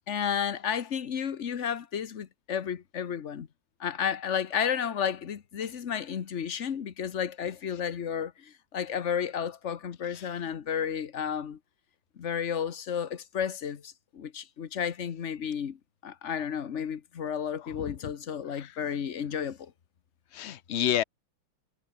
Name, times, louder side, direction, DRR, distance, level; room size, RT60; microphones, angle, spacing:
voice 1, 0.1-3.5 3.8-11.6 12.2-15.8 16.0-19.7, left 8 dB, 45° left, 1.1 m, -32 dB
voice 2, 17.6-18.0 18.5-18.8 20.3-21.0, left 10 dB, 90° left, 0.6 m, -31 dB
omnidirectional pair, 2.3 m